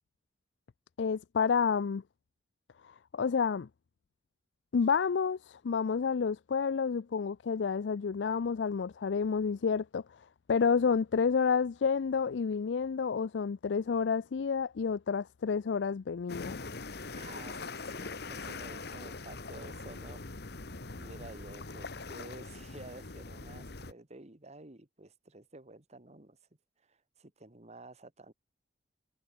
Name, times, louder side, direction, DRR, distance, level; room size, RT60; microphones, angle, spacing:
voice 1, 1.0-2.0 2.8-3.7 4.7-10.0 10.5-16.6, left 6 dB, 85° left, 0.4 m, -29 dB
sound 1, 16.3-23.9, left 3 dB, 65° left, 1.5 m, -42 dB
voice 2, 17.1-20.2 20.9-26.4 26.8-28.3, right 2 dB, 40° right, 1.9 m, -51 dB
head